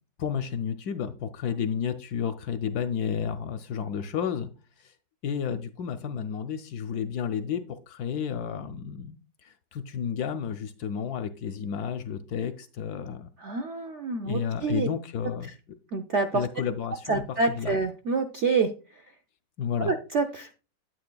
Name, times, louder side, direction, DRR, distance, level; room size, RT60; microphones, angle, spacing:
voice 1, 0.2-4.5 4.8-4.9 5.2-13.3 14.2-15.5 16.3-17.2 17.5-17.8 19.6-19.9, left 7 dB, 70° left, 9 dB, 0.9 m, -31 dB
voice 2, 13.4-14.9 15.9-16.4 17.1-18.7 19.8-20.5, right 4 dB, 70° right, 5 dB, 0.6 m, -27 dB
9.4 x 9.0 x 2.2 m, 0.33 s
omnidirectional pair, 2.0 m